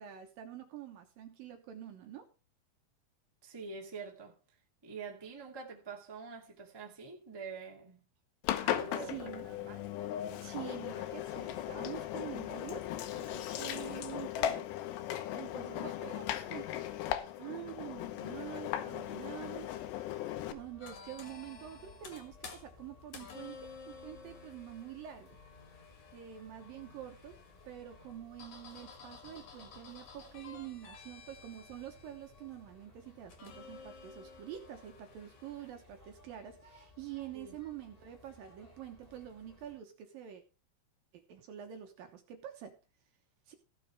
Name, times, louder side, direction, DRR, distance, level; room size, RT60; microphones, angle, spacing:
voice 1, 0.0-2.3 9.0-9.5 10.4-12.8 13.1-14.7 15.3-16.7 17.4-20.0 20.5-25.4 26.1-27.4 27.7-40.4 41.3-42.8 43.5-43.6, right 11 dB, 70° right, 2.4 m, -46 dB
voice 2, 3.4-4.3 4.8-8.0 8.6-9.9 37.3-37.5, right 4 dB, 15° right, 0.7 m, -46 dB
Engine, 8.4-20.5, left 12 dB, 75° left, 3.0 m, -37 dB
sound 1, 20.3-39.8, left 3 dB, 15° left, 1.2 m, -60 dB
sound 2, 20.8-35.7, left 5 dB, 50° left, 2.6 m, -53 dB
15.5 x 6.7 x 4.7 m
omnidirectional pair, 5.1 m